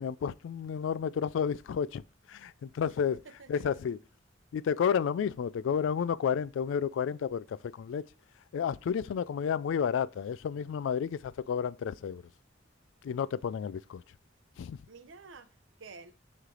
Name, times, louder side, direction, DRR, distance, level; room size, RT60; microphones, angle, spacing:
voice 1, 0.0-2.0 2.3-3.2 3.5-4.0 4.5-8.0 8.5-12.2 13.0-14.0 14.6-14.8, left 7 dB, 80° left, 0.3 m, -31 dB
voice 2, 3.2-3.8 14.9-16.1, right 4 dB, 85° right, 0.7 m, -51 dB
9.4 x 3.3 x 3.8 m
head